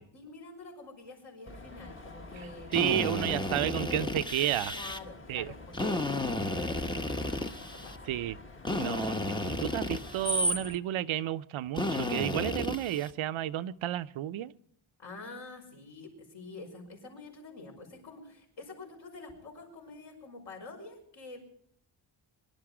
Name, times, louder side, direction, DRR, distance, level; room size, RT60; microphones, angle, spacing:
voice 1, 0.0-2.7 3.1-4.3 4.7-8.0 15.0-21.4, left 3 dB, 65° left, 2 dB, 5.4 m, -47 dB
Screech, 1.5-10.8, equal, 25° left, 1.2 m, -40 dB
Drill, 2.7-5.0 5.7-8.0 8.7-10.5 11.7-13.1, left 2 dB, 10° left, 0.8 m, -33 dB
voice 2, 2.7-4.8 5.3-5.5 8.1-8.4 8.8-14.5, right 12 dB, 80° right, 12 dB, 0.7 m, -31 dB
23.0 x 11.5 x 4.9 m, 0.65 s
wide cardioid pair, 155°, 48 cm